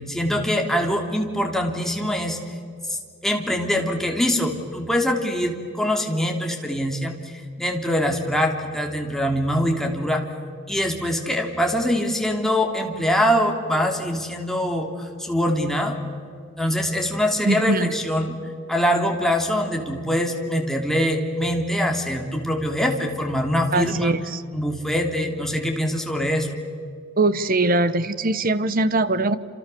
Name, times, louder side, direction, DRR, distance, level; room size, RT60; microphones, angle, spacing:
voice 1, 0.0-2.4 2.9-3.0 3.2-7.2 7.6-10.2 10.7-14.9 15.2-16.0 16.6-18.4 18.7-24.1 24.5-26.6, equal, ahead, 1 dB, 3.2 m, -23 dB
voice 2, 17.5-17.9 23.7-24.4 27.2-29.4, right 2 dB, 45° right, 13 dB, 1.2 m, -21 dB
29.0 x 27.5 x 7.0 m, 2.2 s
head